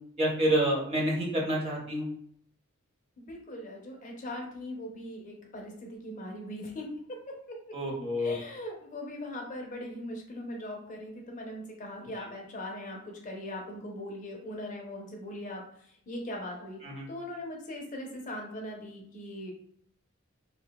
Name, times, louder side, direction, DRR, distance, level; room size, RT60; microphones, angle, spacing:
voice 1, 0.2-2.1 7.7-8.3 16.8-17.1, right 1 dB, 30° right, -2 dB, 0.6 m, -28 dB
voice 2, 3.2-7.6 8.2-15.7 16.1-16.8 17.1-19.5, left 1 dB, 40° left, 0 dB, 0.6 m, -40 dB
2.6 x 2.1 x 2.2 m, 0.66 s
head